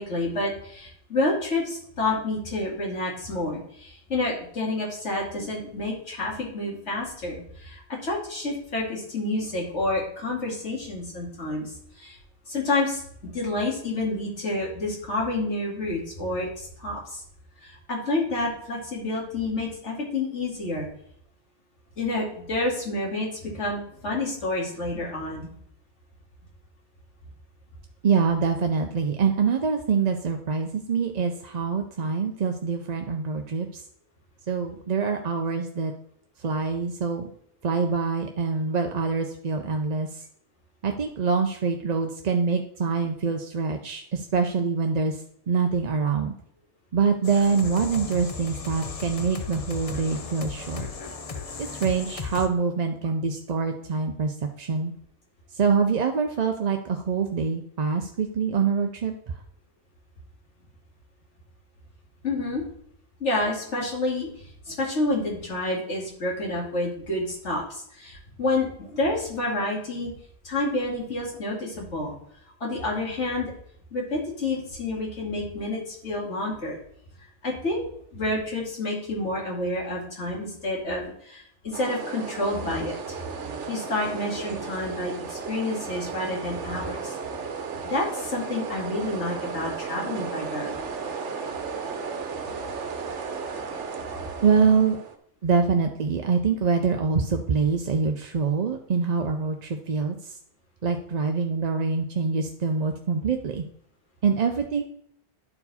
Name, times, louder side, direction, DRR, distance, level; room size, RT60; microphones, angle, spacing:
voice 1, 0.0-12.2 12.5-13.0 13.3-17.2 17.6-20.9 22.0-25.5 62.2-62.6 63.2-64.3 64.7-70.1 70.4-72.1 72.6-73.5 73.9-76.8 77.4-77.8 78.1-83.0 83.7-87.1 87.9-90.8, left 2 dB, 85° left, -2 dB, 2.6 m, -29 dB
voice 2, 28.0-33.8 34.5-35.9 36.4-37.3 37.6-40.3 40.8-46.4 46.9-50.9 51.6-54.9 55.5-59.4 94.4-95.0 95.4-100.4 100.8-103.6 104.2-104.8, right 5 dB, 45° right, 4 dB, 0.6 m, -25 dB
sound 1, 47.2-52.5, left 5 dB, 40° left, 0.7 m, -36 dB
sound 2, 81.7-95.2, right 5 dB, 90° right, 1.2 m, -34 dB
11.0 x 4.6 x 4.2 m, 0.65 s
omnidirectional pair, 1.2 m